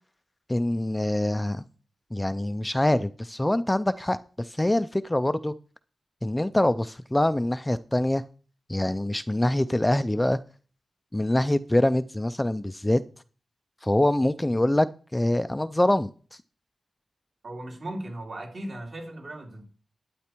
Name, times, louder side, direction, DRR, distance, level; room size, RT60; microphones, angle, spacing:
voice 1, 0.5-1.6 2.1-5.5 6.2-8.2 8.7-10.4 11.1-13.0 13.8-16.1, left 1 dB, 10° left, 0.4 m, -24 dB
voice 2, 17.4-19.6, right 1 dB, 50° right, 3.6 m, -37 dB
12.0 x 9.3 x 4.5 m
wide cardioid pair, 105°, 0 cm